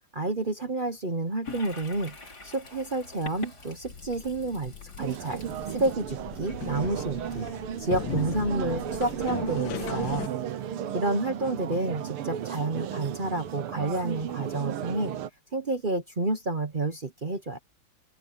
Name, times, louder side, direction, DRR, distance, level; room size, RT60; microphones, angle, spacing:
voice 1, 0.1-5.4 5.7-7.5 7.8-10.3 10.9-15.1 15.5-17.6, right 2 dB, 40° right, 0.7 m, -30 dB
Toilet flush, 1.4-8.0, left 3 dB, 45° left, 4.9 m, -46 dB
sound 1, 3.9-10.3, left 10 dB, 65° left, 1.6 m, -38 dB
sound 2, 5.0-15.3, right 9 dB, 80° right, 1.9 m, -34 dB
open air
omnidirectional pair, 2.4 m